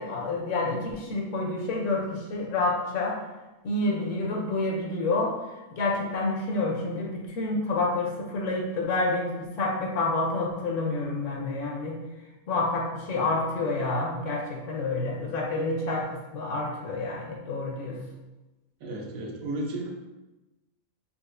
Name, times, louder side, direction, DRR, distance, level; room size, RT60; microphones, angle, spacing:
voice 1, 0.0-3.2 3.6-5.3 5.7-12.0 12.5-18.0, left 2 dB, 70° left, -1 dB, 0.9 m, -28 dB
voice 2, 18.8-19.9, right 1 dB, 80° right, 0 dB, 1.1 m, -33 dB
4.1 x 2.4 x 2.4 m, 1.1 s
omnidirectional pair, 1.5 m